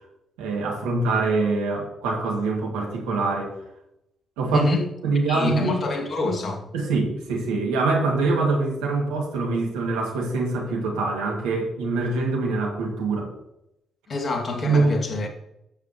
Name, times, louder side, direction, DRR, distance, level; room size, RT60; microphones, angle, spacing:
voice 1, 0.4-3.5 4.4-4.7 5.0-5.7 6.7-13.3 14.6-15.0, right 3 dB, 75° right, 2.2 m, -24 dB
voice 2, 4.5-4.8 5.3-6.7 14.1-15.3, left 3 dB, 45° left, 2.3 m, -26 dB
12.0 x 8.0 x 3.1 m
hypercardioid pair, 40°, 0 cm